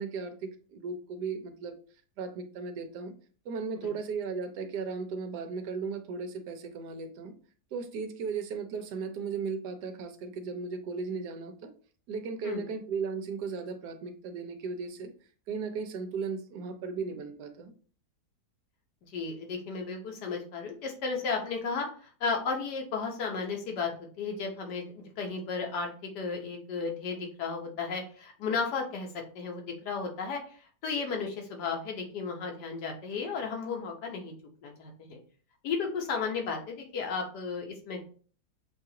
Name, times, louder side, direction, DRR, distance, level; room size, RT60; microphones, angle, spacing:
voice 1, 0.0-1.7 2.2-3.1 3.4-7.3 7.7-11.7 12.1-15.1 15.5-17.7, right 5 dB, 80° right, 7 dB, 1.2 m, -36 dB
voice 2, 19.1-23.9 24.2-25.9 26.1-29.1 29.3-30.4 30.8-34.3 34.6-35.2 35.6-38.0, left 5 dB, 75° left, 2 dB, 1.5 m, -34 dB
6.7 x 2.4 x 2.8 m, 0.42 s
omnidirectional pair, 1.8 m